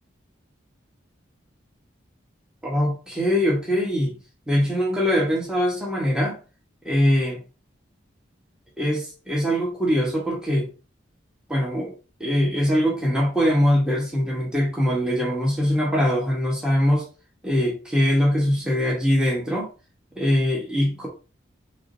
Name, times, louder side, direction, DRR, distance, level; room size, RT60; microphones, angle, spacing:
voice 1, 2.6-4.1 4.5-6.4 6.8-7.4 8.8-10.7 11.5-11.9 12.2-17.1 17.4-19.7 20.2-21.1, equal, 5° right, 1.2 m, -22 dB
4.8 x 3.1 x 2.7 m
head